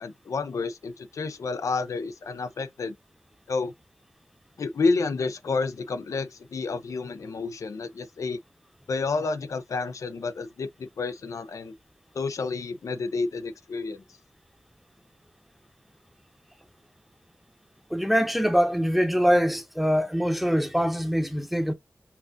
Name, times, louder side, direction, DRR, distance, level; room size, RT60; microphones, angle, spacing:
voice 1, 0.0-2.9 3.5-3.7 4.6-8.4 8.9-11.7 12.1-14.0, left 4 dB, 90° left, 0.5 m, -30 dB
voice 2, 17.9-21.7, equal, ahead, 0.8 m, -23 dB
5.7 x 2.5 x 2.5 m
wide cardioid pair, 90°, 5 cm